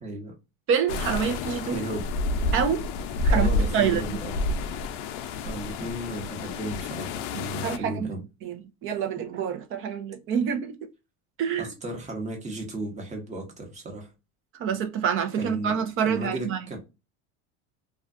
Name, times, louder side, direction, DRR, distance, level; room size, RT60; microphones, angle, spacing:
voice 1, 0.0-0.3 1.7-2.1 3.3-4.4 5.4-8.2 11.6-14.1 15.4-15.8 16.1-16.8, right 2 dB, 20° right, 1.0 m, -35 dB
voice 2, 0.7-1.8 2.5-2.9 3.2-3.5 3.7-4.2 7.6-8.1 8.4-10.8 11.4-11.7 14.5-16.7, right 7 dB, 40° right, 0.6 m, -27 dB
sound 1, 0.9-7.8, left 2 dB, 70° left, 0.5 m, -29 dB
2.4 x 2.3 x 2.4 m
supercardioid pair, 120°, 33 cm